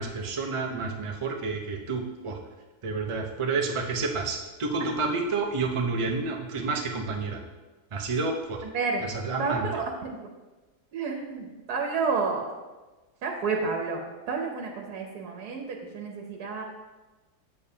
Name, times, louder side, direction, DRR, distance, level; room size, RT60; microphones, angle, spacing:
voice 1, 0.0-2.4 2.8-7.4 7.9-8.6 9.2-9.7, right 4 dB, 45° right, 2 dB, 0.4 m, -29 dB
voice 2, 9.4-10.3 10.9-12.5 13.2-14.0 14.3-16.6, right 4 dB, 90° right, 1 dB, 1.3 m, -30 dB
7.9 x 6.9 x 2.8 m, 1.2 s
omnidirectional pair, 1.6 m